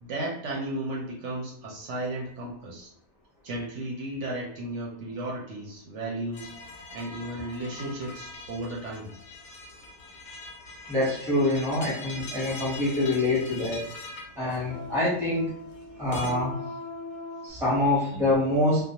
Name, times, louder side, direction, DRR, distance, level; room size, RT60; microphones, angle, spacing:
voice 1, 0.0-2.9 3.4-9.1, right 1 dB, 70° right, -3 dB, 0.9 m, -34 dB
sound 1, 6.3-16.3, left 2 dB, 50° left, 0.6 m, -42 dB
voice 2, 10.9-13.9 14.4-15.5 16.0-16.5 17.4-18.9, left 1 dB, ahead, -6 dB, 0.7 m, -25 dB
sound 2, 12.5-17.5, left 2 dB, 45° right, 0.5 m, -42 dB
2.3 x 2.1 x 2.8 m, 0.65 s
omnidirectional pair, 1.4 m